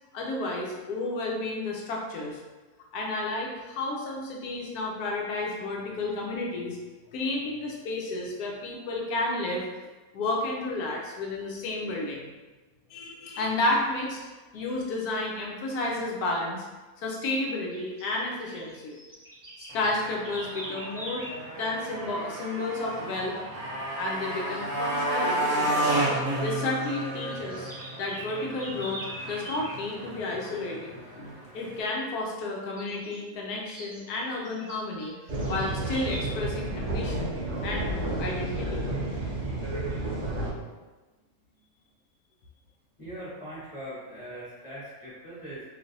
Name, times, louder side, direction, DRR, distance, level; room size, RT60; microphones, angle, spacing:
voice 1, 0.1-2.4 2.9-6.8 7.1-9.6 10.1-12.3 12.9-14.3 14.5-16.6 17.0-19.0 19.6-21.3 21.6-23.3 24.0-26.0 26.4-27.7 28.0-35.1 35.5-37.4 37.6-37.9 38.2-38.8, left 2 dB, 75° left, -1 dB, 1.2 m, -31 dB
sound 1, 17.1-17.3 17.7-21.4 24.0-24.3 24.5-24.7 25.1-26.5 26.8-29.8 32.8-33.2 33.7-36.3, right 1 dB, 15° right, 1.0 m, -43 dB
Motorcycle, 19.7-31.8, right 1 dB, 55° right, 0.9 m, -32 dB
sound 2, 35.3-40.5, right 2 dB, 80° right, 0.4 m, -31 dB
voice 2, 43.0-45.6, right 1 dB, 25° left, -11 dB, 1.0 m, -41 dB
3.2 x 2.6 x 2.6 m, 1.2 s
omnidirectional pair, 1.7 m